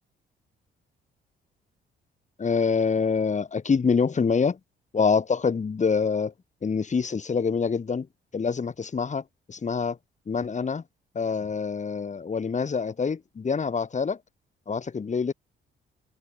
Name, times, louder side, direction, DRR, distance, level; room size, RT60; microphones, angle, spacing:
voice 1, 2.4-4.6 4.9-6.3 6.6-8.1 8.3-9.2 9.5-10.0 10.3-10.8 11.1-14.2 14.7-15.3, left 5 dB, 35° left, 5.7 m, -25 dB
open air
cardioid pair, 90°, 20 cm